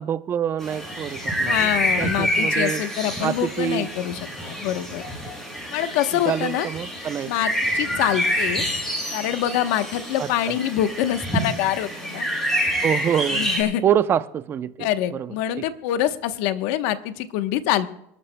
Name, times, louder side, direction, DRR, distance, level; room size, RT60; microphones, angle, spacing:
voice 1, 0.0-2.8 3.2-3.9 6.3-7.3 10.2-10.3 12.8-13.5 13.8-15.3, right 9 dB, 30° right, 0.6 m, -26 dB
sound 1, 0.6-13.6, equal, 5° left, 6.1 m, -27 dB
voice 2, 1.4-5.0 5.7-6.7 7.3-8.6 9.1-12.3 13.3-13.8 14.8-17.9, left 12 dB, 70° left, 1.0 m, -25 dB
26.5 x 12.5 x 2.2 m
supercardioid pair, 130°, 7 cm